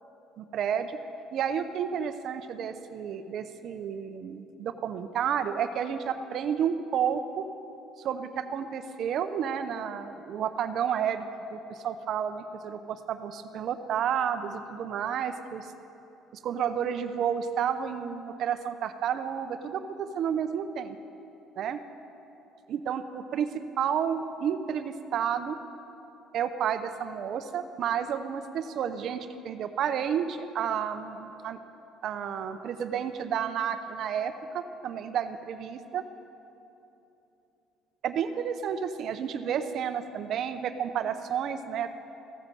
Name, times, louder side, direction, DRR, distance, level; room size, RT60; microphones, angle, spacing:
voice 1, 0.4-1.0 1.3-7.5 8.0-11.2 11.5-15.7 16.4-21.0 21.6-21.8 22.7-23.5 23.8-25.6 26.3-31.6 32.0-36.0 38.0-41.9, right 8 dB, 60° right, 9 dB, 0.6 m, -31 dB
15.0 x 8.7 x 7.7 m, 3.0 s
cardioid pair, 110°, 0 cm